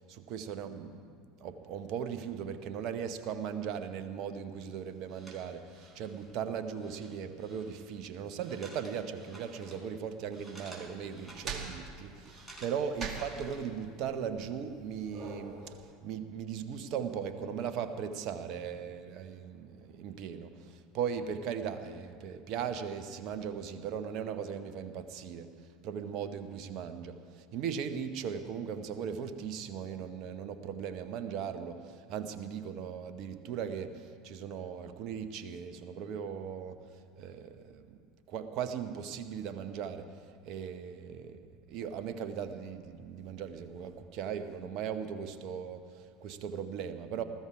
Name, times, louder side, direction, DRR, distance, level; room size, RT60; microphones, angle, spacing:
voice 1, 0.1-1.0 1.4-25.5 25.8-36.8 37.2-38.0 38.3-40.1 40.4-47.2, right 7 dB, 50° right, 9 dB, 1.1 m, -38 dB
sound 1, 4.6-13.9, right 2 dB, 5° right, 4.9 m, -54 dB
sound 2, 10.8-15.9, right 5 dB, 35° right, 2.5 m, -44 dB
19.5 x 14.5 x 4.8 m, 2.2 s
figure-of-eight pair, 75°, 0 cm